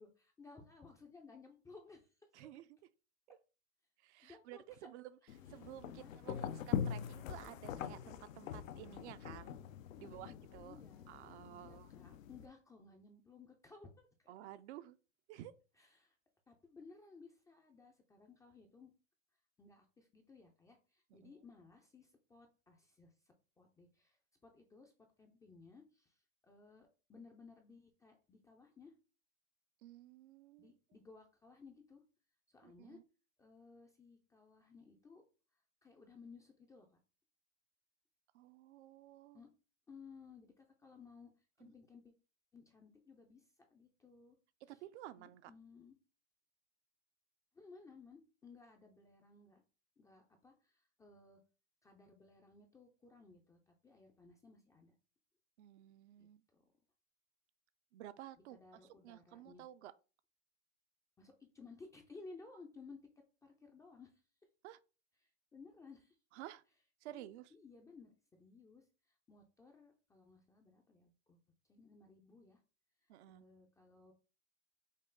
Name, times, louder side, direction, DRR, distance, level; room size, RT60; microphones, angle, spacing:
voice 1, 0.0-2.5 4.2-4.9 6.0-6.4 10.0-11.2 11.5-14.4 15.8-16.2 16.5-18.9 19.6-24.9 25.2-28.9 30.6-32.0 32.5-33.0 33.4-35.2 35.8-37.0 39.3-39.5 39.9-42.1 42.5-44.4 44.7-44.8 45.2-46.0 47.5-49.6 50.0-51.4 51.8-55.0 56.2-56.6 58.5-59.7 61.2-63.0 63.4-64.2 65.2-66.2 67.1-71.4 71.7-72.6 73.0-74.1, left 4 dB, 10° left, 0.3 m, -59 dB
voice 2, 2.3-2.6 3.3-3.4 4.0-5.1 5.5-9.6 10.0-10.8 11.1-11.9 14.3-15.0 15.3-15.5 21.2-21.3 29.8-30.8 32.6-33.0 38.3-39.4 41.6-41.7 44.7-45.5 55.6-56.4 57.9-58.6 59.0-59.9 64.6-64.8 66.3-66.6 67.0-67.5 73.1-73.4, right 13 dB, 60° right, 0.5 m, -53 dB
sound 1, 5.3-12.5, left 8 dB, 90° left, 0.5 m, -43 dB
5.4 x 2.0 x 3.7 m
hypercardioid pair, 115°, 38 cm